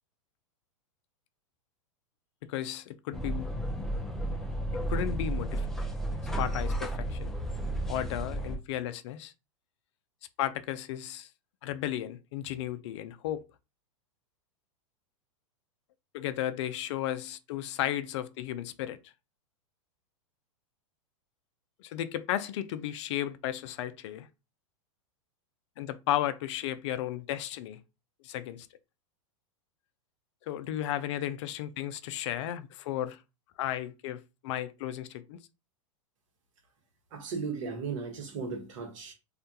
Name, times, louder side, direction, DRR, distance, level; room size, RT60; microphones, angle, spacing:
voice 1, 2.5-3.5 4.9-5.7 6.4-7.3 7.9-9.3 10.4-11.3 11.6-13.4 16.1-19.0 21.8-24.3 25.8-27.8 28.2-28.7 30.5-33.2 33.6-35.4, left 12 dB, 60° left, 0.4 m, -34 dB
sound 1, 3.1-8.6, right 1 dB, ahead, 0.5 m, -32 dB
voice 2, 37.1-39.1, right 5 dB, 65° right, 1.1 m, -36 dB
2.4 x 2.2 x 2.7 m
hypercardioid pair, 115°, 17 cm